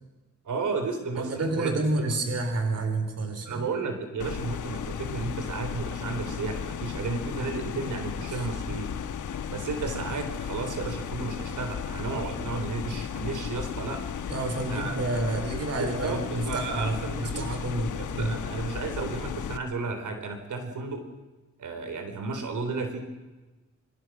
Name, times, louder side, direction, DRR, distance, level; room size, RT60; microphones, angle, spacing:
voice 1, 0.4-2.1 3.4-8.9 9.5-14.0 14.7-15.0 15.8-17.5 17.9-21.0 21.6-23.0, right 4 dB, 80° right, 6 dB, 4.0 m, -33 dB
voice 2, 1.2-3.7 8.3-8.5 14.3-18.3, right 2 dB, 55° right, 6 dB, 3.7 m, -29 dB
sound 1, 4.2-19.6, left 8 dB, 80° left, 1.4 m, -35 dB
27.0 x 25.5 x 6.2 m, 1.2 s
wide cardioid pair, 135°, 30 cm